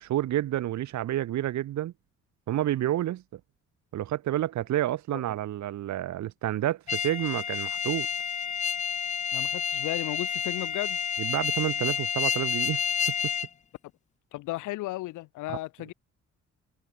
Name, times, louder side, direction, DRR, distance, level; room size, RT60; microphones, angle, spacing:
voice 1, 0.0-1.9 2.5-3.4 3.9-8.1 11.2-12.8 15.5-15.6, right 13 dB, 70° right, 1.1 m, -29 dB
sound 1, 6.9-13.5, left 7 dB, 25° left, 0.4 m, -29 dB
voice 2, 9.3-11.0 14.3-15.9, left 18 dB, 80° left, 0.6 m, -34 dB
cardioid pair, 90°, 30 cm